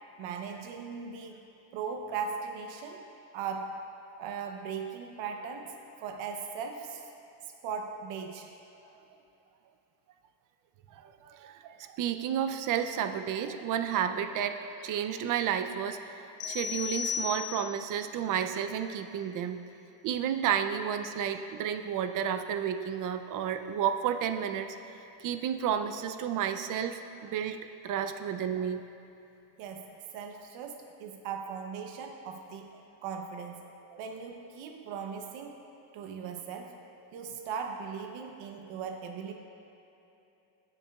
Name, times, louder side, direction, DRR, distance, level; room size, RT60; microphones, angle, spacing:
voice 1, 0.2-1.4 1.7-3.0 3.3-3.8 4.2-5.7 6.0-7.1 7.6-8.5 29.6-32.7 33.0-33.6 34.0-35.6 35.9-36.8 37.1-39.3, right 6 dB, 80° right, 3 dB, 0.8 m, -38 dB
voice 2, 10.9-19.6 20.0-24.7 25.2-27.6 27.8-28.8 33.9-34.0, right 9 dB, 50° right, 8 dB, 0.5 m, -31 dB
sound 1, 16.4-17.9, left 7 dB, 65° left, 1.3 m, -35 dB
16.5 x 7.2 x 2.3 m, 3.0 s
cardioid pair, 165°, 43 cm